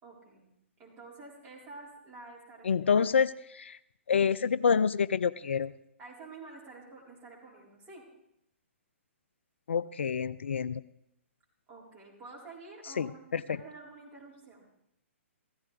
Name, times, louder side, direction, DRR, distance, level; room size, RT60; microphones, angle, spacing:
voice 1, 0.0-0.5 0.8-3.0 6.0-8.1 11.7-14.7, right 3 dB, 20° right, -4 dB, 4.3 m, -49 dB
voice 2, 2.6-3.8 4.1-5.7 9.7-10.8 13.0-13.4, left 6 dB, 60° left, 16 dB, 0.4 m, -27 dB
16.0 x 14.5 x 3.4 m, 0.78 s
figure-of-eight pair, 125°, 7 cm